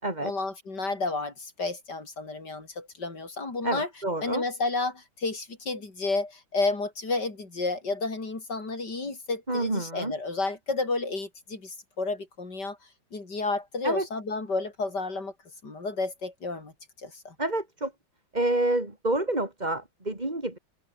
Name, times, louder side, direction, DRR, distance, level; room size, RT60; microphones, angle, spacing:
voice 1, 0.2-3.9 4.2-12.8 13.1-15.3 15.6-16.7 17.0-17.3, left 3 dB, 55° left, 5.1 m, -31 dB
voice 2, 3.6-4.4 9.5-10.1 13.8-14.1 17.4-17.9 18.3-20.6, right 2 dB, 20° right, 4.0 m, -28 dB
open air
omnidirectional pair, 2.2 m